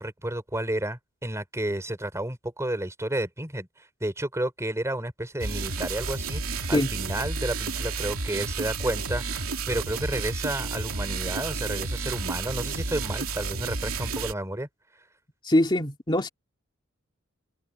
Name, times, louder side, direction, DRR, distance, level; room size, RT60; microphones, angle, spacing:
voice 1, 0.0-9.2 9.7-14.7, right 1 dB, 15° right, 4.1 m, -31 dB
sound 1, 5.4-14.3, right 4 dB, 85° right, 2.7 m, -31 dB
voice 2, 15.4-16.3, left 1 dB, 25° left, 2.5 m, -22 dB
head